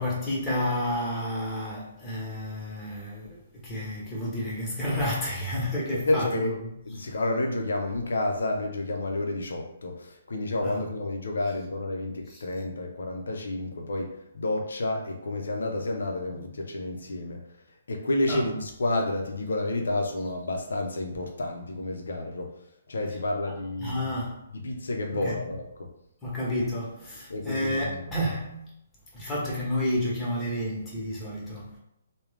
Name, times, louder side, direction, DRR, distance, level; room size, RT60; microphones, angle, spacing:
voice 1, 0.0-7.1 10.6-10.9 11.4-11.5 12.3-12.4 18.3-18.5 23.1-23.2 23.5-24.4 25.1-25.5 26.2-28.7 29.1-31.8, left 1 dB, 15° left, 1.2 m, -31 dB
voice 2, 5.9-6.5 6.8-17.4 17.9-22.6 22.9-24.1 24.6-25.9 27.3-28.1, left 2 dB, 60° left, 0.7 m, -30 dB
3.4 x 2.2 x 3.4 m
figure-of-eight pair, 130°, 0 cm